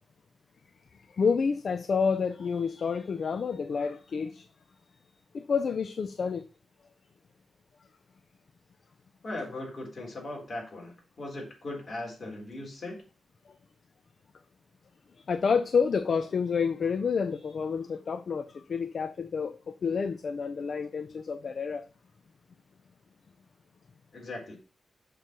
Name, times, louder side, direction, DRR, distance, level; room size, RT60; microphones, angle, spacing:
voice 1, 1.1-4.5 5.3-6.4 15.3-21.9, left 5 dB, 55° left, 0.5 m, -29 dB
voice 2, 9.2-13.0 24.1-24.6, left 2 dB, 40° left, 3.7 m, -38 dB
6.7 x 4.5 x 6.0 m
wide cardioid pair, 125°, 0 cm